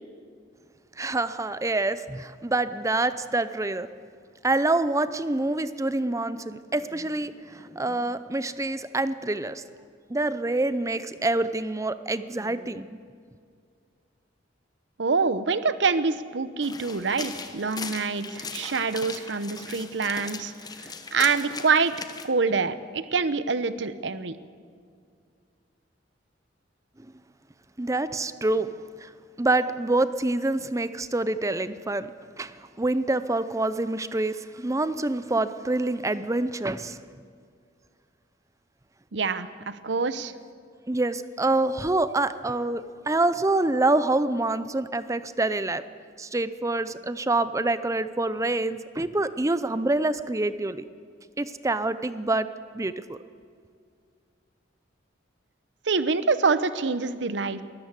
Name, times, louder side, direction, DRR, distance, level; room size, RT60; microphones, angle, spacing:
voice 1, 1.0-3.9 4.4-9.6 10.1-13.0 27.0-27.1 27.8-28.7 29.0-29.1 29.4-32.1 32.4-37.0 40.9-45.8 46.2-50.8 51.4-52.5 52.7-53.2, right 2 dB, 15° right, 14 dB, 0.6 m, -26 dB
voice 2, 15.0-20.5 21.1-21.9 22.2-24.4 39.1-40.3 55.9-57.6, right 4 dB, 70° right, 13 dB, 0.8 m, -25 dB
sound 1, 16.6-22.3, left 4 dB, 20° left, 1.0 m, -39 dB
22.5 x 14.0 x 8.2 m, 2.2 s
head